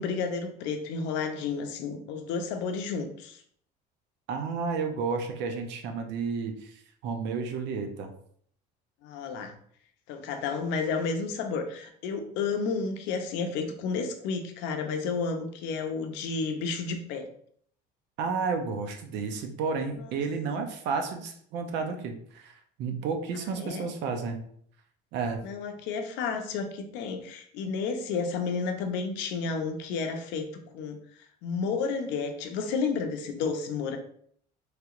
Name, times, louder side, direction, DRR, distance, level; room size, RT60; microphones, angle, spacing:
voice 1, 0.0-3.4 9.0-9.5 10.1-17.3 23.3-23.9 25.4-30.5 30.7-31.0 31.4-34.0, left 5 dB, 75° left, 5 dB, 0.6 m, -31 dB
voice 2, 4.3-8.1 18.2-24.4 25.1-25.4, right 5 dB, 70° right, 5 dB, 0.6 m, -32 dB
3.3 x 2.8 x 2.4 m, 0.63 s
cardioid pair, 115°, 19 cm